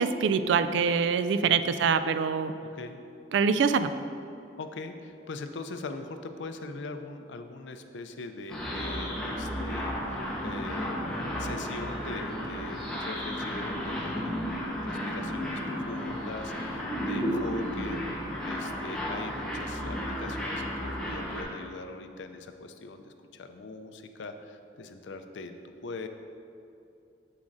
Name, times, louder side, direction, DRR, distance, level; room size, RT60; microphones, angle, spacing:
voice 1, 0.0-2.5 3.3-3.9 17.1-17.4, right 6 dB, 75° right, 12 dB, 0.3 m, -25 dB
voice 2, 4.6-26.1, left 3 dB, 80° left, 8 dB, 0.4 m, -42 dB
sound 1, 8.5-21.4, equal, 5° left, 1.0 m, -33 dB
7.4 x 7.0 x 2.6 m, 2.6 s
head